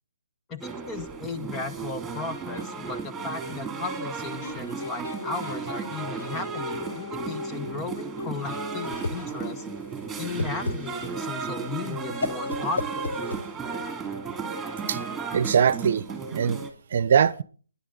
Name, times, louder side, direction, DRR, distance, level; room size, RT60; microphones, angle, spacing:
voice 1, 0.5-9.7 10.2-13.2, left 4 dB, 15° left, 1.1 m, -35 dB
sound 1, 0.6-16.7, right 5 dB, 5° right, 2.6 m, -34 dB
sound 2, 2.2-3.6 4.4-9.9, left 4 dB, 60° left, 1.2 m, -40 dB
Whoosh swoosh swish, 8.4-13.9, left 2 dB, 85° left, 1.4 m, -34 dB
voice 2, 15.3-16.1 16.3-17.4, right 7 dB, 50° right, 0.9 m, -22 dB
28.5 x 10.5 x 3.9 m
hypercardioid pair, 155°, 0 cm